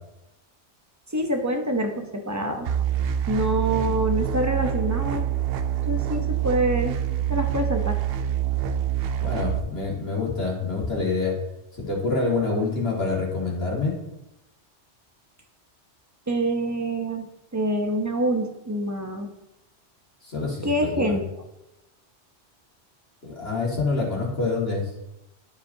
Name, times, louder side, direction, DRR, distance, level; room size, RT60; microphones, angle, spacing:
voice 1, 1.1-2.7 3.3-5.3 5.9-7.0 7.3-8.0 16.3-17.3 17.5-19.3 20.6-21.2, right 1 dB, 20° right, 4 dB, 0.6 m, -26 dB
sound 1, 2.6-9.6, right 10 dB, 65° right, 0.7 m, -26 dB
voice 2, 9.2-11.4 11.7-13.9 20.2-21.2 23.2-24.9, left 3 dB, 60° left, -4 dB, 2.2 m, -26 dB
11.5 x 5.0 x 2.7 m, 0.93 s
omnidirectional pair, 1.2 m